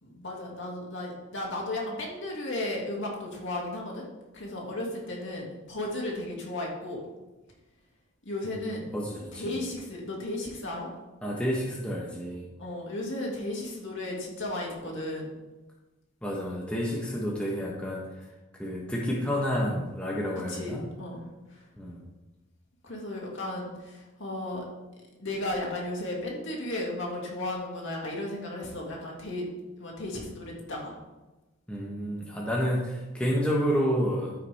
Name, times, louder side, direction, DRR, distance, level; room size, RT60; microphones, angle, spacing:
voice 1, 0.0-4.1 4.3-7.0 8.2-8.9 9.3-10.9 12.6-15.3 20.5-21.2 21.5-21.6 22.8-24.6 25.2-29.5 29.8-30.9 33.2-33.3, left 1 dB, 55° left, -2 dB, 2.4 m, -34 dB
voice 2, 8.6-9.6 11.2-12.5 16.2-18.1 18.6-20.8 21.8-22.0 31.7-34.3, equal, 5° left, -3 dB, 1.1 m, -30 dB
14.0 x 5.8 x 3.5 m, 1.1 s
head